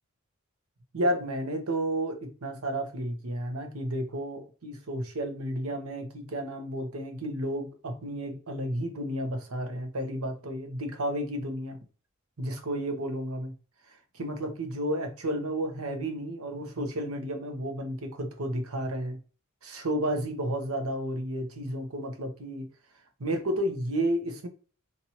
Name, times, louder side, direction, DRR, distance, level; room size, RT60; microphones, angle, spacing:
voice 1, 0.9-11.8 12.4-13.5 13.9-19.2 19.6-22.7 23.2-24.5, right 1 dB, 85° right, 0.9 m, -32 dB
4.2 x 2.6 x 2.8 m
head